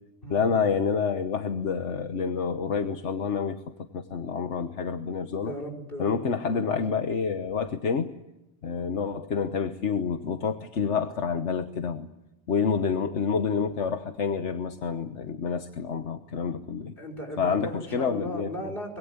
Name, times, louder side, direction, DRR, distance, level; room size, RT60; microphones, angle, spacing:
voice 1, 0.3-3.6 3.9-5.5 6.0-8.1 8.6-12.1 12.5-16.9 17.4-18.5, left 6 dB, 80° left, 7 dB, 1.5 m, -28 dB
voice 2, 5.4-7.0 17.0-19.0, equal, 50° left, 4 dB, 5.3 m, -37 dB
25.0 x 21.5 x 9.7 m, 0.95 s
omnidirectional pair, 1.2 m